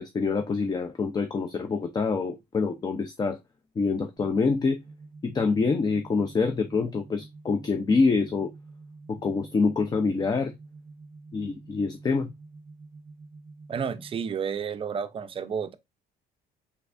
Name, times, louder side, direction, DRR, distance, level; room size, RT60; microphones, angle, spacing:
voice 1, 0.0-3.4 3.8-4.8 5.2-8.5 9.1-10.5 11.3-12.3, left 4 dB, 25° left, 0.4 m, -26 dB
sound 1, 4.2-14.2, right 3 dB, 15° right, 1.1 m, -48 dB
voice 2, 13.7-15.7, right 7 dB, 35° right, 0.4 m, -31 dB
3.4 x 3.2 x 2.4 m
cardioid pair, 110°, 17 cm